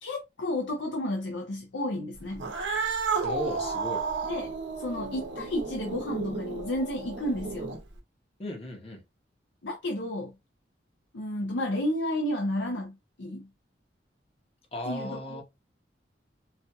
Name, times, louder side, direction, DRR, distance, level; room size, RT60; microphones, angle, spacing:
voice 1, 0.0-2.4 4.3-7.8 9.6-10.3 11.1-13.5 14.9-15.4, left 1 dB, 80° left, 0.6 m, -32 dB
Cat, 2.3-8.0, right 4 dB, 90° right, 0.8 m, -32 dB
voice 2, 3.2-4.0 8.4-9.0 14.7-15.4, left 1 dB, 30° left, 0.9 m, -35 dB
4.2 x 2.5 x 2.2 m
head